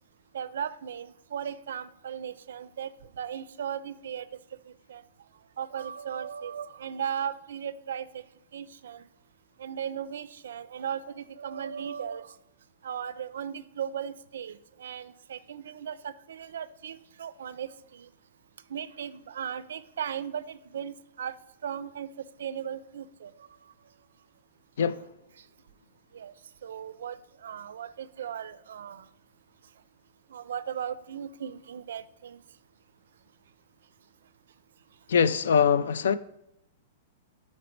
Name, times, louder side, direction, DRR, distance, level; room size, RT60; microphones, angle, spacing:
voice 1, 0.3-4.3 4.6-5.0 5.6-8.2 8.5-9.0 9.6-12.4 12.8-18.1 18.7-21.4 21.6-23.5 25.4-25.5 26.1-26.3 26.6-29.1 30.3-32.4, right 8 dB, 80° right, 0.4 m, -37 dB
voice 2, 35.1-36.1, left 7 dB, 80° left, 0.3 m, -23 dB
5.2 x 4.2 x 4.4 m
supercardioid pair, 170°, 0 cm